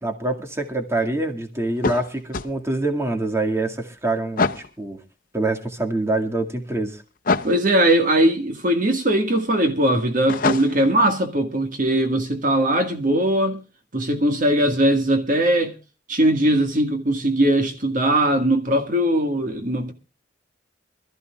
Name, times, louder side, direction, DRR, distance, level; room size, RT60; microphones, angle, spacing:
voice 1, 0.0-5.0 5.3-7.0, right 2 dB, 15° right, 2.1 m, -25 dB
sound 1, 1.8-2.5 4.4-4.7 7.2-7.6 10.3-10.9, left 3 dB, 50° left, 0.8 m, -24 dB
voice 2, 7.4-13.6 13.9-15.8 16.1-19.9, right 1 dB, 50° right, 1.8 m, -20 dB
25.0 x 14.0 x 2.4 m
head